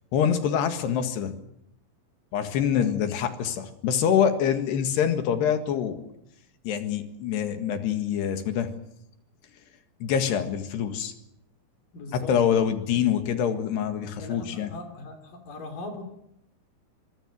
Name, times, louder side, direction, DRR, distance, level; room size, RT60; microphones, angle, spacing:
voice 1, 0.1-1.3 2.3-6.1 6.7-8.7 10.0-11.1 12.1-14.7, left 8 dB, 65° left, 8 dB, 3.8 m, -25 dB
voice 2, 11.9-13.0 14.2-16.0, left 2 dB, 50° left, 5 dB, 4.4 m, -40 dB
25.0 x 23.0 x 6.5 m, 0.77 s
omnidirectional pair, 5.4 m